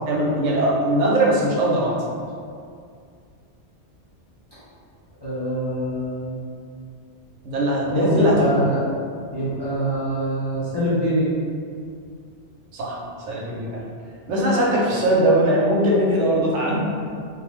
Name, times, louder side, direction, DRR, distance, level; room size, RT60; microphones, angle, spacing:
voice 1, 0.1-2.0 7.4-8.6 12.7-13.8 14.3-16.8, right 1 dB, 80° right, -4 dB, 0.9 m, -20 dB
voice 2, 5.2-6.4 7.9-8.8 9.3-11.3, right 1 dB, 35° left, -11 dB, 0.4 m, -24 dB
2.5 x 2.0 x 3.1 m, 2.2 s
omnidirectional pair, 1.2 m